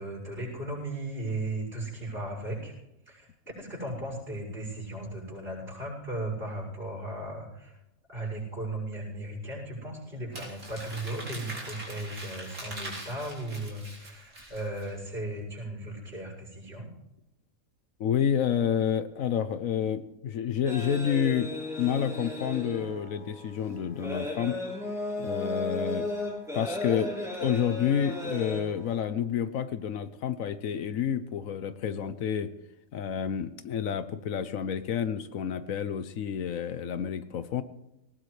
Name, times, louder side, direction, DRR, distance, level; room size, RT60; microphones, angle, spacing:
voice 1, 0.0-2.7 3.1-3.3 3.6-7.7 8.1-16.9, right 1 dB, 40° right, -3 dB, 7.0 m, -36 dB
Crumpling crinkling, 10.3-14.9, right 1 dB, 90° right, 4.4 m, -42 dB
voice 2, 18.0-21.5 21.8-24.6 25.2-26.1 26.5-27.1 27.4-32.5 32.9-37.6, left 8 dB, 75° left, 12 dB, 1.2 m, -29 dB
sound 1, 20.7-29.0, left 2 dB, ahead, 3.4 m, -35 dB
19.0 x 19.0 x 3.3 m, 0.91 s
omnidirectional pair, 1.5 m